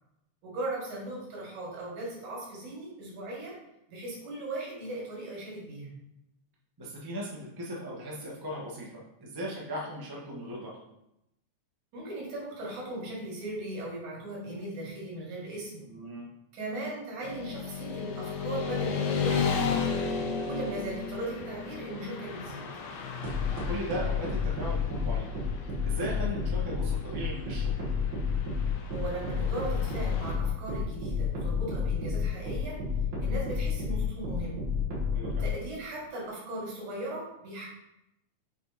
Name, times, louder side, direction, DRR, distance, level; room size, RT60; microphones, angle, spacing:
voice 1, 0.4-3.6 3.9-6.0 11.9-15.9 16.5-20.0 20.5-22.7 28.9-32.8 33.2-34.7 35.4-37.7, right 1 dB, 85° right, -3 dB, 3.6 m, -38 dB
voice 2, 6.8-10.8 15.9-16.3 20.7-20.8 23.5-25.4 25.8-27.8 35.1-35.5, equal, 15° right, -4 dB, 0.8 m, -38 dB
Motorcycle / Traffic noise roadway noise, 17.2-30.4, left 5 dB, 75° left, 1.9 m, -35 dB
sound 1, 23.2-35.5, left 4 dB, 45° right, 1.7 m, -30 dB
7.3 x 4.5 x 4.2 m, 0.85 s
omnidirectional pair, 3.4 m